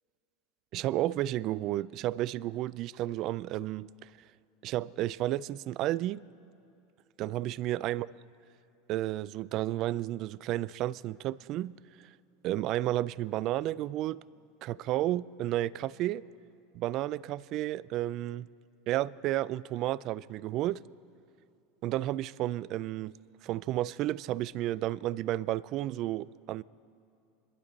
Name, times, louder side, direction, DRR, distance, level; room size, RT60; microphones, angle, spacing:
voice 1, 0.7-4.1 4.6-6.2 7.2-8.1 8.9-11.8 12.4-14.2 14.6-16.2 16.7-18.5 18.9-20.8 21.8-23.1 23.4-26.6, right 14 dB, 50° right, 0.4 m, -32 dB
26.5 x 11.5 x 4.0 m
hypercardioid pair, 105°, 0 cm